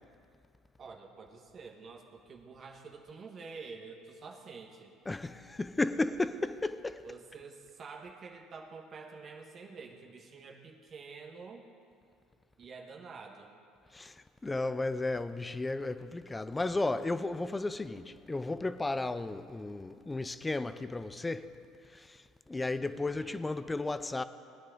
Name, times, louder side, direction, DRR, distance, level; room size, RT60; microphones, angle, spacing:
voice 1, 0.8-4.9 7.0-11.6 12.6-13.6 22.9-23.4, right 4 dB, 45° right, 1.5 m, -48 dB
voice 2, 5.1-7.0 13.9-21.6 21.9-24.2, left 2 dB, 15° left, 0.6 m, -34 dB
19.0 x 9.8 x 3.9 m
hypercardioid pair, 70°, 0 cm